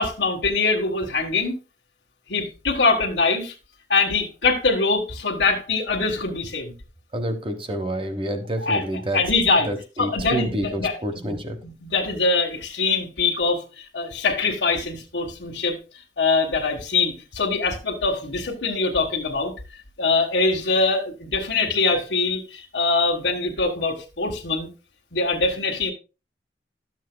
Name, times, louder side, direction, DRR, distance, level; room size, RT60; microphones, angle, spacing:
voice 1, 0.0-1.6 2.3-3.5 3.9-6.7 8.6-8.8 9.1-9.7 10.0-11.4 11.6-15.8 16.2-19.5 20.0-24.7 25.1-25.9, left 3 dB, 70° left, -3 dB, 1.5 m, -23 dB
voice 2, 7.1-9.2 9.6-11.6, equal, 30° right, 7 dB, 1.1 m, -28 dB
13.0 x 7.4 x 2.2 m, 0.30 s
head